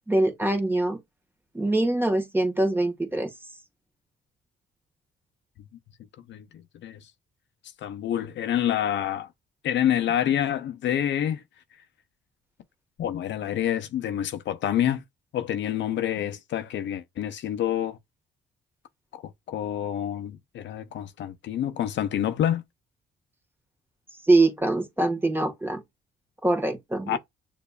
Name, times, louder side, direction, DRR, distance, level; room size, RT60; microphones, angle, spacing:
voice 1, 0.1-1.0 1.5-3.3 24.3-25.8 26.4-27.2, right 2 dB, 10° right, 1.4 m, -23 dB
voice 2, 6.3-7.1 7.8-9.3 9.6-11.4 13.0-15.0 15.3-18.0 19.1-22.6 27.1-27.2, left 10 dB, 65° left, 0.6 m, -27 dB
6.7 x 2.6 x 2.3 m
cardioid pair, 90°, 20 cm